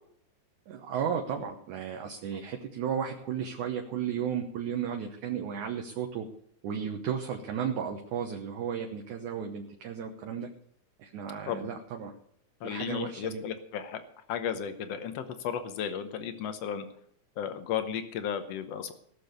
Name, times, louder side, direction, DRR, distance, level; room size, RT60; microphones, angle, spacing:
voice 1, 0.7-6.3 6.6-10.5 11.0-12.1 12.6-13.4, right 8 dB, 65° right, 2 dB, 2.3 m, -34 dB
voice 2, 12.6-14.0 14.3-16.8 17.4-18.9, left 8 dB, 75° left, 9 dB, 1.4 m, -34 dB
18.5 x 6.9 x 6.7 m, 0.69 s
omnidirectional pair, 4.2 m